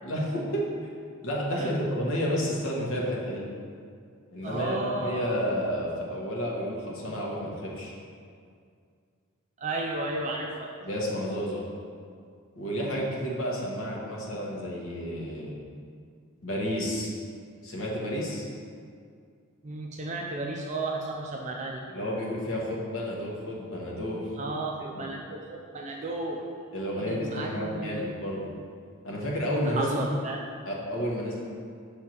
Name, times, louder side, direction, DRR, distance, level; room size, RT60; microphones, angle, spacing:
voice 1, 0.0-0.7 1.2-3.4 4.3-4.8 5.0-7.9 10.8-11.6 12.6-15.5 16.4-17.1 17.6-18.5 21.9-24.2 24.8-25.0 26.7-28.5 29.0-30.0 30.6-31.4, equal, 75° left, -3 dB, 1.1 m, -31 dB
voice 2, 4.4-5.3 9.6-10.7 19.6-21.8 24.4-26.4 27.0-28.1 29.6-30.5, right 2 dB, 35° right, 0 dB, 0.4 m, -33 dB
6.2 x 3.5 x 4.5 m, 2.2 s
head